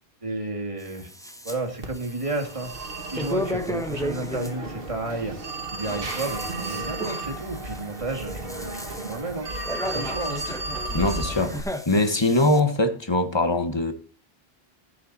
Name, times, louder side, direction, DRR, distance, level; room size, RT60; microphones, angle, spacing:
voice 1, 0.2-1.1 1.4-9.5 9.8-10.4, right 2 dB, 30° right, 2.4 m, -32 dB
sound 1, 0.8-1.6 1.9-4.5 5.6-12.6, left 1 dB, 5° left, 1.0 m, -35 dB
Telephone, 1.8-11.6, right 2 dB, 65° right, 2.0 m, -34 dB
voice 2, 10.9-11.5 11.9-13.9, left 2 dB, 25° left, 1.4 m, -22 dB
14.0 x 8.4 x 4.2 m
omnidirectional pair, 1.0 m